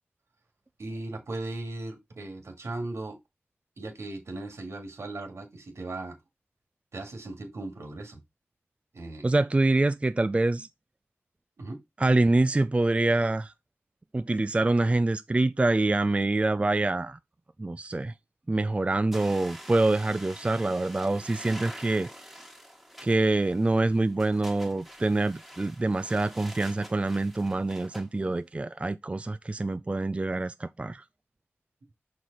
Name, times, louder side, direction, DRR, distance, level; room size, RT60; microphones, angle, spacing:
voice 1, 0.8-3.2 3.8-6.2 6.9-8.2 8.9-9.3 11.6-11.8, right 2 dB, 75° right, 2.0 m, -37 dB
voice 2, 9.2-10.7 12.0-13.5 14.1-17.2 17.6-18.1 18.5-22.3 23.0-31.0, right 2 dB, 25° right, 0.4 m, -25 dB
sound 1, 19.1-28.1, equal, ahead, 1.5 m, -46 dB
5.9 x 4.7 x 3.9 m
wide cardioid pair, 60°, 5 cm